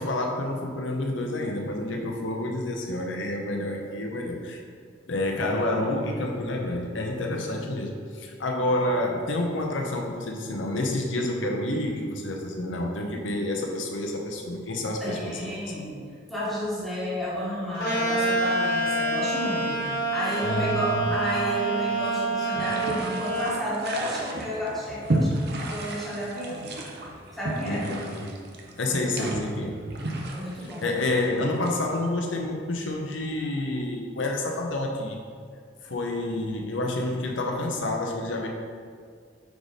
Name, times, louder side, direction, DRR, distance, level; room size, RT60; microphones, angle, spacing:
voice 1, 0.0-4.6 5.1-15.4 20.4-21.1 27.7-28.3 28.8-29.8 30.6-35.2 35.8-38.5, left 1 dB, 80° left, 1 dB, 0.8 m, -29 dB
voice 2, 15.0-16.0 16.3-25.4 25.7-26.7 27.3-28.0 28.9-29.4 30.3-30.9, equal, ahead, -9 dB, 1.3 m, -31 dB
sound 1, 17.8-23.6, right 2 dB, 55° left, 1.0 m, -27 dB
sound 2, 22.6-32.1, right 1 dB, 60° right, 0.7 m, -33 dB
4.7 x 4.1 x 5.0 m, 2.1 s
head